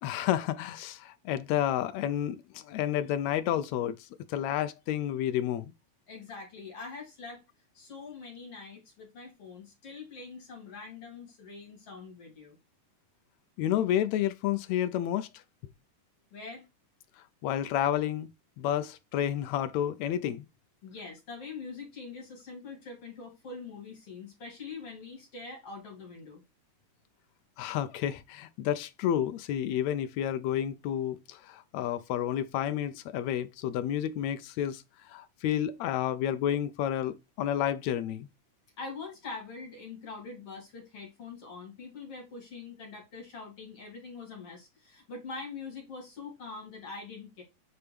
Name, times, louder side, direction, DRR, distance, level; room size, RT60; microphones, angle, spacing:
voice 1, 0.0-5.7 13.6-15.3 17.4-18.3 18.6-20.5 27.6-38.3, left 11 dB, 80° left, 1.6 m, -30 dB
voice 2, 6.1-7.4 7.7-12.6 16.3-16.7 20.8-26.4 38.8-47.4, left 4 dB, 45° left, 3.4 m, -44 dB
8.4 x 4.4 x 3.4 m
omnidirectional pair, 3.7 m